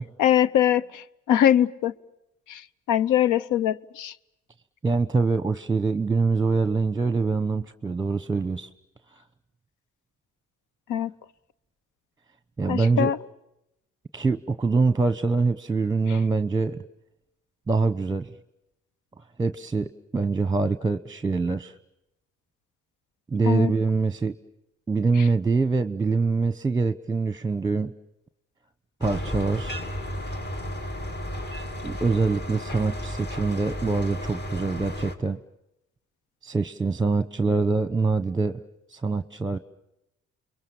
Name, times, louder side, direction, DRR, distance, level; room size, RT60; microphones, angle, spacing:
voice 1, 0.2-1.9 2.5-2.6 2.9-4.1 10.9-11.1 12.7-13.2 16.1-16.2 23.4-23.7 25.2-25.3, left 10 dB, 90° left, 18 dB, 0.9 m, -22 dB
voice 2, 4.8-8.7 12.6-13.1 14.1-16.8 17.7-18.3 19.4-21.7 23.3-24.3 24.9-27.9 29.0-29.8 31.8-35.4 36.4-38.6 38.9-39.6, right 4 dB, 10° right, 12 dB, 1.0 m, -24 dB
sound 1, 29.0-35.1, equal, 35° left, 3.1 m, -33 dB
29.5 x 23.0 x 7.2 m, 0.86 s
cardioid pair, 90°, 30 cm